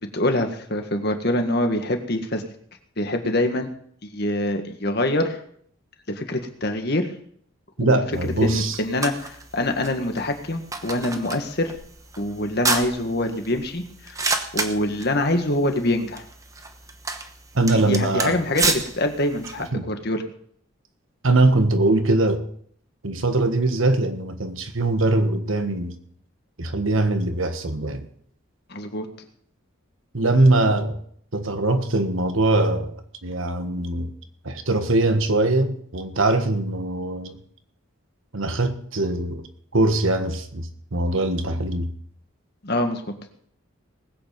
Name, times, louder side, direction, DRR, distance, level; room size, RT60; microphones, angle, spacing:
voice 1, 0.1-2.4 3.0-3.7 4.1-5.4 6.1-7.1 7.8-8.0 8.4-11.7 12.2-14.2 14.5-16.2 17.7-20.2 28.7-29.1 42.6-43.1, left 1 dB, 50° left, 1.7 m, -25 dB
voice 2, 7.8-8.8 17.5-18.4 19.6-19.8 21.2-22.4 23.0-26.0 26.6-28.1 30.1-31.0 31.3-33.0 33.2-34.1 34.4-37.4 38.3-39.5 39.7-41.9, right 2 dB, 75° right, 1.4 m, -22 dB
sound 1, 8.1-19.7, right 3 dB, 15° right, 1.0 m, -31 dB
19.5 x 8.4 x 5.2 m
head